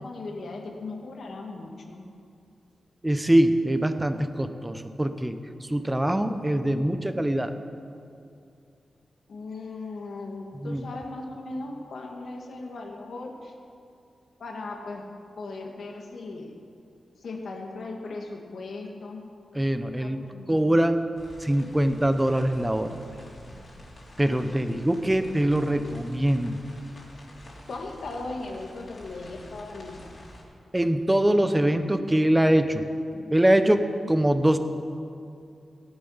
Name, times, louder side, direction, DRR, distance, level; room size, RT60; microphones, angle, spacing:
voice 1, 0.0-2.0 9.3-13.5 14.4-15.0 15.4-16.6 17.2-19.2 20.0-20.7 24.7-24.9 27.7-30.1, left 3 dB, 65° left, 2 dB, 1.9 m, -38 dB
voice 2, 3.0-5.4 5.7-7.5 10.6-10.8 19.5-21.1 21.4-23.0 24.2-26.6 30.7-32.8 33.2-34.6, right 1 dB, 10° right, 9 dB, 0.7 m, -23 dB
sound 1, 21.2-30.4, left 1 dB, 45° left, 3.2 m, -48 dB
17.0 x 11.5 x 5.7 m, 2.5 s
wide cardioid pair, 165°, 0 cm